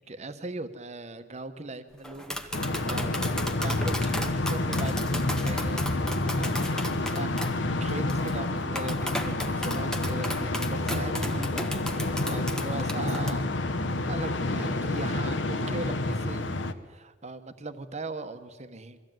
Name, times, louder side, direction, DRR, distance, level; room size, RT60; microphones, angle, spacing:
voice 1, 0.0-3.1 3.6-6.6 7.1-13.5 14.1-16.5 16.9-19.0, right 2 dB, 35° right, 10 dB, 1.2 m, -39 dB
Tap, 2.0-13.3, equal, 5° left, 1.2 m, -36 dB
sound 1, 2.5-16.7, left 2 dB, 70° left, 1.1 m, -29 dB
23.0 x 15.0 x 9.2 m, 1.4 s
head